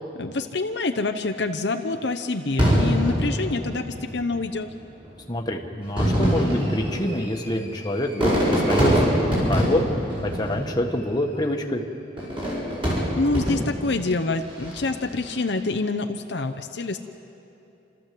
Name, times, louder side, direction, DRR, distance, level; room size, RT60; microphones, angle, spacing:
voice 1, 0.2-4.7 13.1-17.0, left 3 dB, 65° left, 6 dB, 0.8 m, -26 dB
Fireworks, 2.6-4.2 5.0-5.1 5.8-11.1 12.2-13.9 14.5-15.0, equal, 30° right, 7.2 m, -24 dB
voice 2, 5.3-9.9 10.2-11.8, left 1 dB, 20° left, 2 dB, 1.5 m, -26 dB
29.0 x 13.5 x 7.7 m, 2.9 s
head